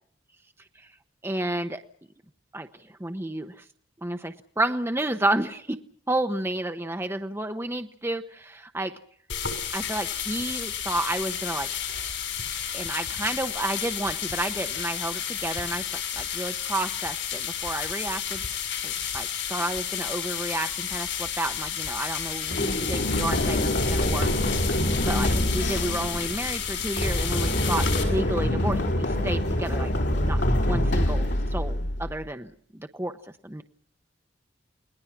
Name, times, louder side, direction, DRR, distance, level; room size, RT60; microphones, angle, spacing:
voice 1, 1.2-1.8 2.5-3.6 4.0-5.8 6.1-8.9 9.7-11.7 12.7-24.8 25.1-33.6, right 1 dB, 15° right, 6 dB, 0.9 m, -31 dB
sound 1, 9.3-28.0, left 8 dB, 90° left, 6.9 m, -32 dB
Run, 22.5-32.2, left 1 dB, 65° left, 4.1 m, -25 dB
29.5 x 20.0 x 5.9 m, 0.62 s
head